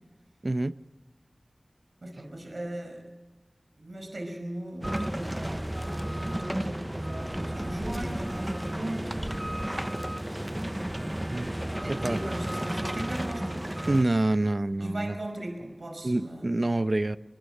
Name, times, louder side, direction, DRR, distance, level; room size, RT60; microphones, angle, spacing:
voice 1, 0.4-0.7 11.3-11.5 11.9-12.2 13.9-15.2 16.0-17.2, right 2 dB, 50° right, 13 dB, 0.7 m, -26 dB
voice 2, 2.0-3.0 3.8-5.7 6.2-9.2 11.8-14.1 14.8-16.4, right 1 dB, 70° right, 3 dB, 5.1 m, -38 dB
sound 1, 4.8-14.0, right 1 dB, 15° right, 0.7 m, -32 dB
22.5 x 22.0 x 6.6 m, 1.1 s
wide cardioid pair, 45°, 0 cm